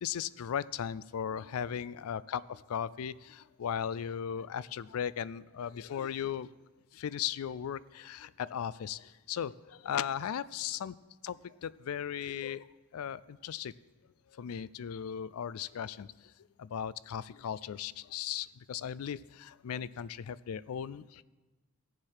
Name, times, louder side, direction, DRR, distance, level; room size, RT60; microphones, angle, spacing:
voice 1, 0.0-6.5 6.9-9.5 9.8-10.9 11.2-13.7 14.3-16.3 16.6-21.2, left 8 dB, 80° left, 19 dB, 0.4 m, -37 dB
16.5 x 7.4 x 4.8 m, 1.2 s
head